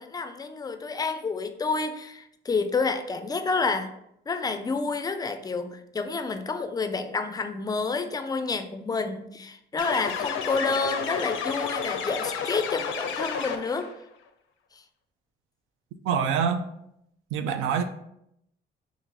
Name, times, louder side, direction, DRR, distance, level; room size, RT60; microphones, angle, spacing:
voice 1, 0.0-3.9 4.3-13.9 14.7-14.8, left 4 dB, 20° left, 8 dB, 0.3 m, -29 dB
sound 1, 9.8-13.9, left 6 dB, 85° left, 0.4 m, -31 dB
voice 2, 16.0-16.6 17.3-17.8, right 7 dB, 90° right, 8 dB, 0.4 m, -25 dB
2.9 x 2.5 x 3.7 m, 0.78 s
cardioid pair, 90°, 20 cm